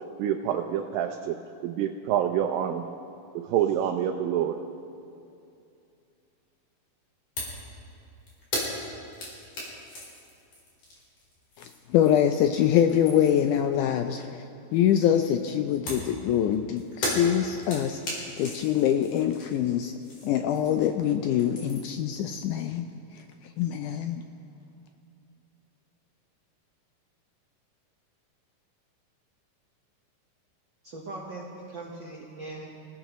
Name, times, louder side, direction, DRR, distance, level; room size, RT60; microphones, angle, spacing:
voice 1, 0.2-1.4 1.6-2.9 3.4-4.6, right 10 dB, 85° right, 3 dB, 2.4 m, -27 dB
sound 1, 7.4-7.6 7.9-12.4 12.7-13.5 15.9-21.0 21.2-22.0, left 1 dB, 55° left, 5.2 m, -36 dB
voice 2, 11.6-19.9 20.2-22.9 23.1-23.2 23.6-24.2, left 10 dB, 80° left, 7 dB, 1.9 m, -24 dB
voice 3, 30.8-32.9, right 2 dB, 65° right, -2 dB, 1.1 m, -40 dB
26.5 x 16.5 x 3.0 m, 2.6 s
omnidirectional pair, 3.9 m